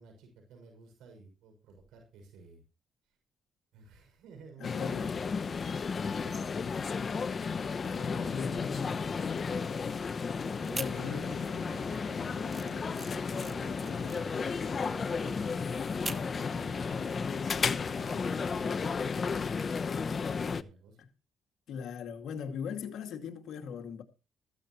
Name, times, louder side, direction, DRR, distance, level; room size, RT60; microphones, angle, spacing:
voice 1, 0.0-2.6 3.7-5.1 6.1-6.5 7.8-9.1 9.4-9.9 10.6-15.8 16.1-19.0 19.8-21.0, right 4 dB, 90° right, 6.5 m, -53 dB
voice 2, 4.6-5.2 7.8-8.7 10.7-11.4 21.7-24.0, left 7 dB, 75° left, 2.3 m, -39 dB
sound 1, 4.6-20.6, left 5 dB, 40° left, 1.0 m, -33 dB
sound 2, 10.3-20.3, right 1 dB, 40° right, 5.5 m, -51 dB
sound 3, 10.6-11.5 11.9-16.4, right 3 dB, 20° right, 1.4 m, -43 dB
15.0 x 14.5 x 3.1 m
cardioid pair, 90°, 0 cm